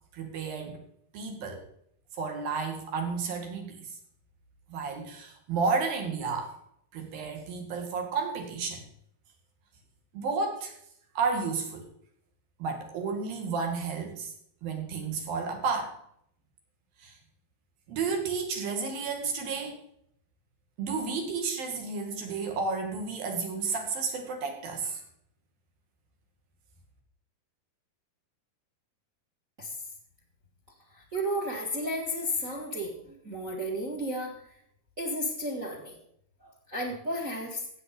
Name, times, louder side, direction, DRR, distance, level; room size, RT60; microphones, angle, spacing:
voice 1, 0.1-0.8 1.1-1.6 2.2-3.9 4.7-6.5 6.9-8.8 10.1-10.7 11.2-11.8 12.6-14.3 14.6-16.0 17.0-17.2 17.9-19.8 20.8-25.0, right 4 dB, 70° right, 3 dB, 3.8 m, -32 dB
voice 2, 30.9-34.3 35.0-36.0 36.4-37.6, equal, 35° right, 2 dB, 1.4 m, -33 dB
15.5 x 7.8 x 5.3 m, 0.70 s
omnidirectional pair, 4.4 m